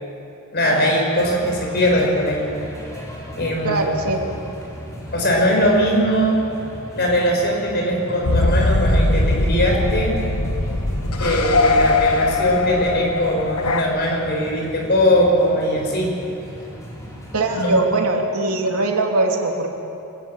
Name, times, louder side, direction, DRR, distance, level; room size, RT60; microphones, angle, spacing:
voice 1, 0.5-2.5 3.4-3.8 5.1-6.4 6.9-10.2 11.2-16.1 17.6-17.7, equal, 50° left, 0 dB, 5.7 m, -20 dB
sound 1, 1.2-17.8, equal, 15° left, 4.4 m, -37 dB
voice 2, 3.6-4.2 17.3-19.7, right 2 dB, 90° right, 1 dB, 2.8 m, -21 dB
sound 2, 8.2-13.8, left 2 dB, 85° left, 1.5 m, -20 dB
25.0 x 18.5 x 7.4 m, 2.7 s
head